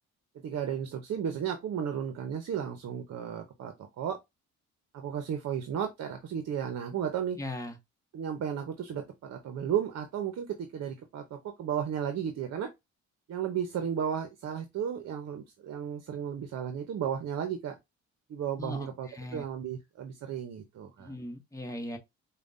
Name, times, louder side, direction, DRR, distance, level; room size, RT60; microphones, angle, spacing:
voice 1, 0.4-4.2 4.9-7.4 8.1-12.7 13.3-17.8 18.3-21.1, right 8 dB, 60° right, 0.7 m, -34 dB
voice 2, 7.4-7.8 18.6-19.4 21.0-22.0, left 1 dB, 10° left, 1.0 m, -39 dB
5.0 x 2.2 x 2.5 m
cardioid pair, 90°, 30 cm